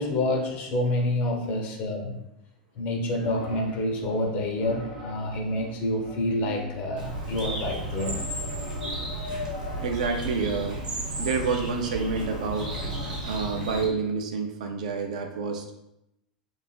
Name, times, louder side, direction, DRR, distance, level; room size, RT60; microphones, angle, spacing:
voice 1, 0.0-2.2 2.8-8.2, left 1 dB, 40° left, 2 dB, 0.5 m, -28 dB
sound 1, 3.2-13.1, left 2 dB, 90° left, 0.8 m, -41 dB
Bird, 7.0-13.9, right 2 dB, 75° right, 0.9 m, -34 dB
voice 2, 9.8-10.8 11.1-12.7 13.2-15.7, right 4 dB, 60° right, 4 dB, 0.4 m, -28 dB
3.1 x 2.4 x 2.2 m, 0.85 s
figure-of-eight pair, 85°, 4 cm